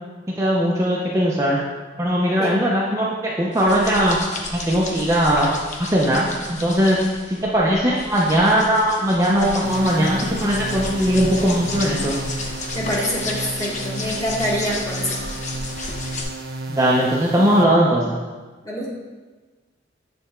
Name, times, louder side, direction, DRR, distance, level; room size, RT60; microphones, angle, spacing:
voice 1, 0.3-1.6 2.0-4.2 4.5-5.5 5.8-7.0 7.3-12.2 16.7-18.1, equal, 15° right, -4 dB, 0.6 m, -19 dB
sound 1, 3.5-16.2, left 2 dB, 40° left, 0.8 m, -32 dB
sound 2, 9.6-17.6, right 2 dB, 55° right, 0.7 m, -33 dB
voice 2, 12.7-15.2 18.6-18.9, equal, 20° left, -5 dB, 1.5 m, -25 dB
8.4 x 3.4 x 4.4 m, 1.3 s
head